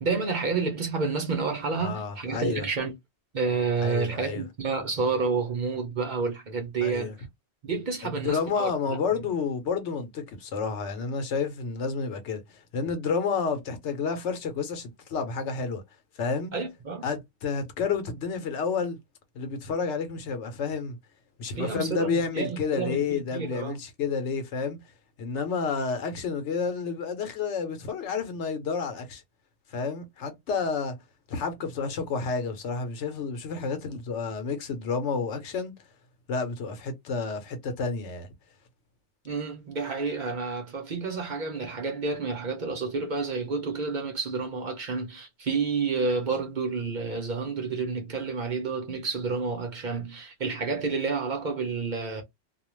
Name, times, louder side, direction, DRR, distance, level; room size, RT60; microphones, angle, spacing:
voice 1, 0.0-2.9 3.3-7.1 7.6-9.0 16.5-17.1 21.5-23.8 39.2-52.2, right 4 dB, 50° right, 0.7 m, -30 dB
voice 2, 1.8-2.7 3.8-4.4 6.8-7.1 8.0-15.8 16.2-16.5 17.0-19.0 19.3-21.0 21.4-24.8 25.2-29.2 29.7-30.9 31.3-35.7 36.3-38.3, left 5 dB, 90° left, 1.0 m, -30 dB
2.4 x 2.2 x 3.0 m
omnidirectional pair, 1.1 m